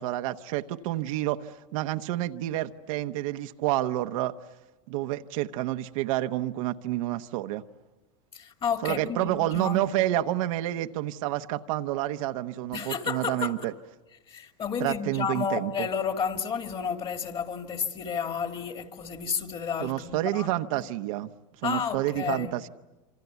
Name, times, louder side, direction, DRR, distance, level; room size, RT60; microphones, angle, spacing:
voice 1, 0.0-4.3 4.9-7.6 8.8-13.7 14.8-15.9 19.8-21.3 21.6-22.7, right 15 dB, 70° right, 1.1 m, -29 dB
voice 2, 8.3-9.9 12.7-13.6 14.3-20.5 20.7-20.8 21.6-22.5, left 6 dB, 30° left, 2.4 m, -31 dB
27.0 x 26.0 x 8.2 m
supercardioid pair, 120°, 18 cm